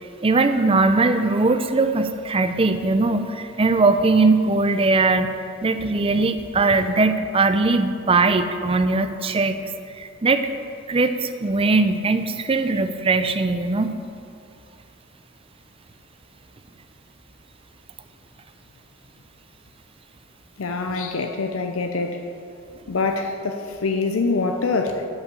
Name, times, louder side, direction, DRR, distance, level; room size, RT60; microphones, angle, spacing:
voice 1, 0.2-9.6 10.0-10.5 10.9-13.9, right 3 dB, 25° right, 8 dB, 0.5 m, -20 dB
voice 2, 20.6-22.2 22.9-25.1, left 3 dB, 90° left, 5 dB, 0.7 m, -24 dB
10.5 x 5.6 x 6.9 m, 2.4 s
head